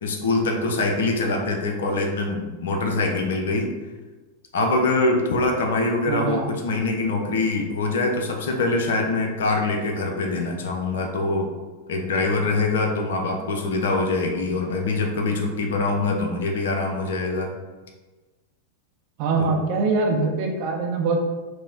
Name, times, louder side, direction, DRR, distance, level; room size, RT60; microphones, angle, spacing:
voice 1, 0.0-3.7 4.5-11.5 11.9-17.5 19.4-19.5, left 3 dB, 60° left, 3 dB, 0.5 m, -24 dB
voice 2, 6.1-6.5 19.2-21.2, right 4 dB, 45° right, 1 dB, 0.6 m, -23 dB
4.6 x 2.0 x 2.6 m, 1.3 s
figure-of-eight pair, 90°, 0 cm